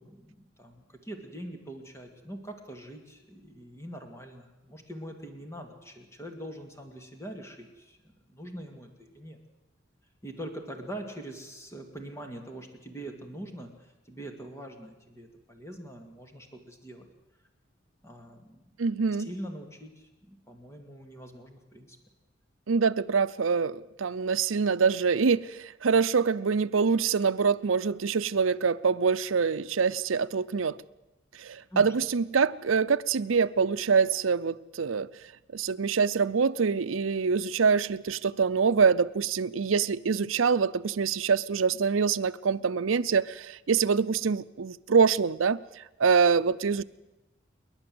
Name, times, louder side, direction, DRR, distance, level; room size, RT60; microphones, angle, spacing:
voice 1, 0.0-9.4 10.2-17.1 18.0-18.6 19.1-22.0 31.7-31.9, right 1 dB, 15° left, 2.3 m, -43 dB
voice 2, 18.8-19.3 22.7-30.8 31.3-35.1 35.5-46.8, right 5 dB, 85° right, 0.6 m, -25 dB
28.5 x 11.5 x 7.9 m
head